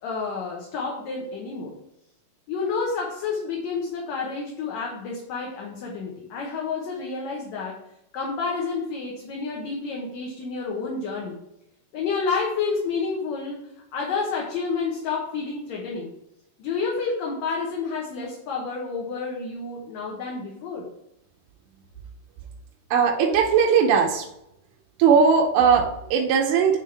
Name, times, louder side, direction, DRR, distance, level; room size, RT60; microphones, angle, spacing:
voice 1, 0.0-1.7 2.5-7.8 8.1-11.4 11.9-13.6 13.9-16.1 16.6-20.9, left 4 dB, 65° left, -2 dB, 2.1 m, -29 dB
voice 2, 22.9-24.3 25.0-26.8, right 6 dB, 75° right, 0 dB, 2.1 m, -19 dB
9.3 x 3.6 x 3.3 m, 0.83 s
omnidirectional pair, 3.9 m